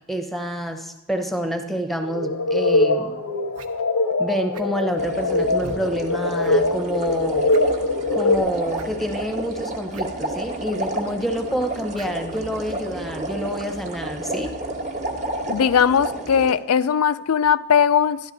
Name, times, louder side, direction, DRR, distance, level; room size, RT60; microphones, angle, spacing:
voice 1, 0.1-3.2 4.2-7.5 8.1-14.5, equal, ahead, 6 dB, 0.8 m, -27 dB
sound 1, 2.0-8.4, left 2 dB, 90° left, 1.0 m, -22 dB
sound 2, 2.7-2.8 3.5-3.7 4.5-4.9 5.6-5.8 6.4-6.5 6.8-6.9 7.5-7.8 8.7-8.9 9.9-10.0 10.3-10.4 11.9-12.2, right 2 dB, 85° right, 1.0 m, -40 dB
sound 3, 5.0-16.5, right 1 dB, 30° right, 1.2 m, -31 dB
voice 2, 15.5-18.3, left 7 dB, 70° left, 15 dB, 0.4 m, -19 dB
12.5 x 11.5 x 4.0 m, 0.92 s
head